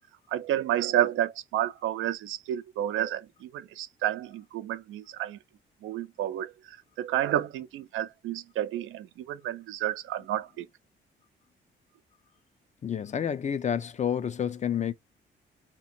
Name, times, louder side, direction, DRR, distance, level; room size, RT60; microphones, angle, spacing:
voice 1, 0.3-5.4 5.8-10.7, right 12 dB, 85° right, 0.5 m, -30 dB
voice 2, 12.8-14.9, left 8 dB, 35° left, 0.5 m, -29 dB
2.9 x 2.5 x 4.3 m
cardioid pair, 90°, 20 cm